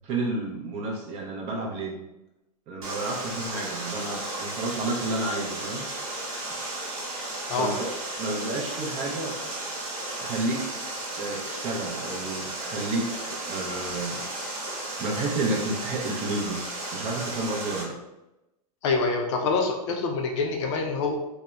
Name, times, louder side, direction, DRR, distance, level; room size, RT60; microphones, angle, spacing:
voice 1, 0.0-2.0 2.7-5.9 7.6-9.4 10.2-10.7 11.2-14.2 15.0-16.6 16.9-17.9, right 2 dB, 30° right, 0 dB, 0.5 m, -31 dB
Water, 2.8-17.8, right 2 dB, 65° right, 0.9 m, -34 dB
voice 2, 18.8-21.1, left 4 dB, 50° left, 2 dB, 0.5 m, -26 dB
2.7 x 2.0 x 2.2 m, 0.94 s
hypercardioid pair, 125°, 19 cm